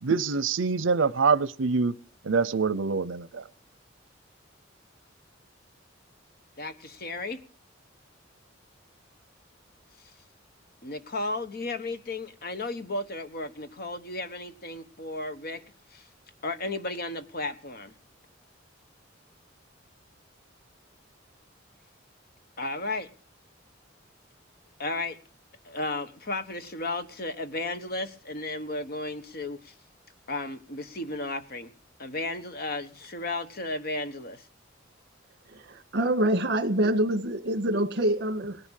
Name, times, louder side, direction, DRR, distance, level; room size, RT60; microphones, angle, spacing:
voice 1, 0.0-1.9 2.2-3.4, right 5 dB, 80° right, 0.7 m, -25 dB
voice 2, 6.6-7.4 10.8-15.6 15.9-16.1 16.4-17.9 22.6-23.1 24.8-25.2 25.6-29.7 30.3-31.7 32.0-34.4, left 2 dB, 50° left, 1.4 m, -34 dB
voice 3, 35.5-38.6, right 1 dB, 60° right, 1.8 m, -26 dB
18.5 x 11.0 x 6.5 m
head